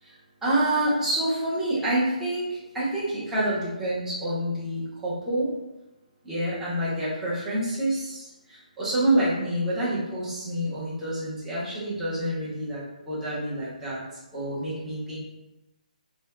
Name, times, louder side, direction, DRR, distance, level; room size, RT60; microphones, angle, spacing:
voice 1, 0.0-5.5 6.2-14.0 14.3-15.2, right 1 dB, 5° right, -10 dB, 1.2 m, -27 dB
3.3 x 2.3 x 3.4 m, 0.99 s
figure-of-eight pair, 140°, 4 cm